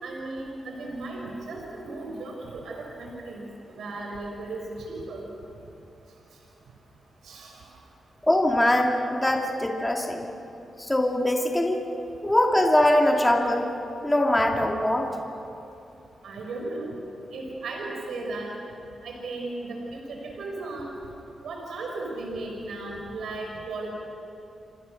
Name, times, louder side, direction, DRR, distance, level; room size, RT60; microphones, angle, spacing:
voice 1, 0.0-3.5 3.8-5.3 7.2-7.6 16.2-17.0 17.3-18.5 19.0-20.9 21.4-23.9, right 2 dB, 85° right, 0 dB, 4.8 m, -35 dB
voice 2, 8.2-10.3 10.8-11.9 12.2-13.7 14.0-15.1, left 1 dB, 10° left, 1 dB, 2.5 m, -22 dB
29.0 x 25.5 x 6.5 m, 2.8 s
cardioid pair, 105°, 0 cm